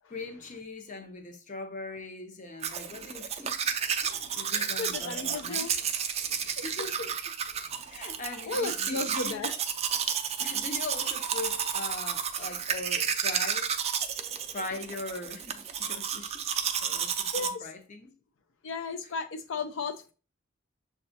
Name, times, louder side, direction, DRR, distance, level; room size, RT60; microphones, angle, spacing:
voice 1, 0.1-3.6 4.0-5.7 6.6-7.1 7.9-9.5 10.4-13.8 14.5-16.4 16.8-18.1, left 2 dB, 40° left, 0.7 m, -41 dB
Domestic sounds home sounds, 2.6-17.5, right 7 dB, 30° right, 0.3 m, -31 dB
voice 2, 4.0-5.7 6.3-6.6 8.5-9.5 17.3-17.7 18.6-20.1, left 3 dB, 75° left, 0.4 m, -35 dB
6.8 x 2.3 x 2.6 m
head